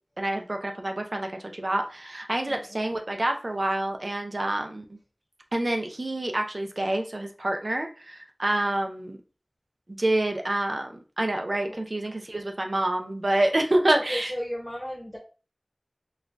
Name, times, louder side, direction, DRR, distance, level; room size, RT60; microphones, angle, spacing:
voice 1, 0.2-5.0 5.5-9.2 9.9-14.3, right 1 dB, 70° right, 4 dB, 0.5 m, -27 dB
voice 2, 2.5-2.8 11.7-11.8 13.9-15.2, equal, 20° left, -3 dB, 0.8 m, -35 dB
4.1 x 2.4 x 2.3 m, 0.35 s
wide cardioid pair, 45°, 0 cm